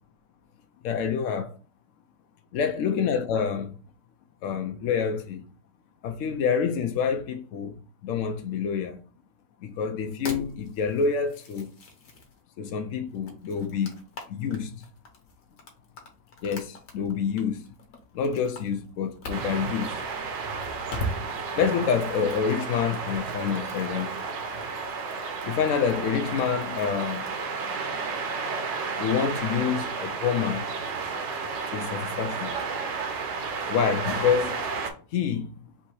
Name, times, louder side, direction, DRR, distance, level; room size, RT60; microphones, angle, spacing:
voice 1, 0.8-1.6 2.5-3.7 4.4-5.4 6.0-9.0 9.6-11.7 12.6-13.9 14.3-14.8 16.4-17.7 18.1-19.9 21.6-24.2 25.5-27.3 29.0-30.7 31.7-32.5 33.7-34.6 35.1-35.5, left 6 dB, 80° left, 0.7 m, -27 dB
sound 1, 10.0-12.4 13.1-27.5, left 1 dB, 55° left, 1.2 m, -42 dB
sound 2, 19.3-34.9, right 4 dB, 80° right, 1.5 m, -32 dB
3.5 x 2.8 x 4.6 m
omnidirectional pair, 1.9 m